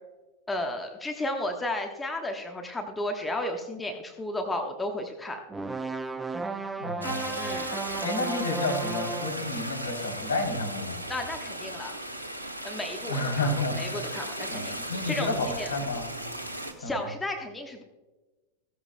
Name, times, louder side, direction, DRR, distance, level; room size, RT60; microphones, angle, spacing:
voice 1, 0.5-5.4 7.4-7.7 11.1-12.0 12.6-15.7 16.8-17.8, left 1 dB, 10° left, 3 dB, 1.2 m, -33 dB
sound 1, 5.5-9.5, right 3 dB, 10° right, 0.6 m, -34 dB
voice 2, 6.8-7.5 7.8-11.1 13.1-14.1 14.5-16.1 16.8-16.9, left 2 dB, 75° left, 1 dB, 3.2 m, -31 dB
sound 2, 7.0-16.7, right 1 dB, 85° right, 1.3 m, -36 dB
16.0 x 13.0 x 2.2 m, 1.2 s
figure-of-eight pair, 90°, 0 cm